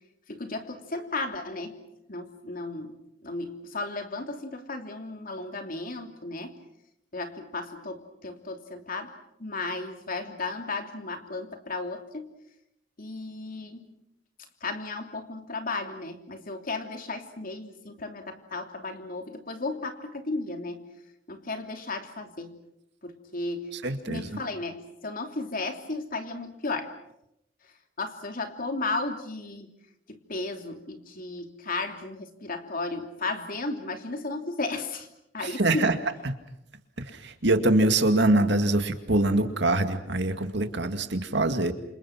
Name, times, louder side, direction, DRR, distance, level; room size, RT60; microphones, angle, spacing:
voice 1, 0.3-1.8 2.1-2.9 3.2-6.6 7.1-9.1 9.4-12.3 13.0-13.9 14.6-20.8 21.3-22.6 23.0-23.7 24.1-26.9 28.0-29.7 30.1-35.1 35.3-35.9, left 3 dB, 50° left, 5 dB, 3.1 m, -34 dB
voice 2, 23.7-24.4 35.4-36.0 37.0-41.7, right 2 dB, 70° right, 8 dB, 2.2 m, -24 dB
28.5 x 27.0 x 6.1 m, 0.82 s
head